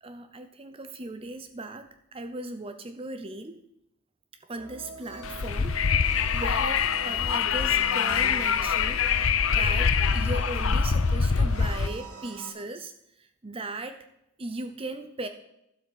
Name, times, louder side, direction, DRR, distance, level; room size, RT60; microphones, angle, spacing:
voice 1, 0.0-3.6 4.4-9.1 9.5-14.1 14.4-15.3, right 2 dB, 25° right, 9 dB, 0.6 m, -38 dB
sound 1, 4.5-12.5, right 2 dB, 85° right, 1.9 m, -43 dB
Wind, 5.2-11.9, left 6 dB, 65° left, 0.6 m, -24 dB
12.0 x 7.9 x 5.8 m, 0.81 s
head